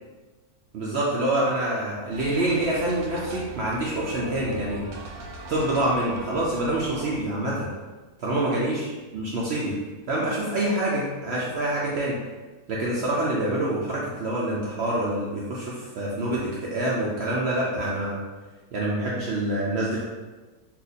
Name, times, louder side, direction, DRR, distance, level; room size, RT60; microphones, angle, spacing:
voice 1, 0.7-4.8 5.5-7.7 8.2-9.7 10.1-12.2 12.7-18.2 18.7-20.0, right 1 dB, 65° right, -5 dB, 0.6 m, -26 dB
sound 1, 2.1-7.2, right 2 dB, 90° right, 1.1 m, -40 dB
2.8 x 2.4 x 3.9 m, 1.3 s
omnidirectional pair, 1.6 m